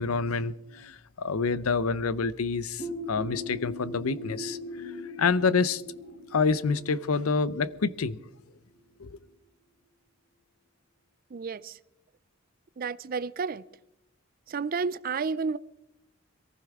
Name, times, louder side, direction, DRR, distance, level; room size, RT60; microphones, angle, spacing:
voice 1, 0.0-4.9 5.2-5.8 6.3-8.2 9.0-9.2, left 4 dB, 90° left, 0.6 m, -27 dB
sound 1, 2.8-8.3, left 1 dB, 50° left, 7.1 m, -40 dB
voice 2, 11.3-11.8 12.8-13.6 14.5-15.6, right 5 dB, 45° right, 0.4 m, -31 dB
22.5 x 15.0 x 3.6 m
head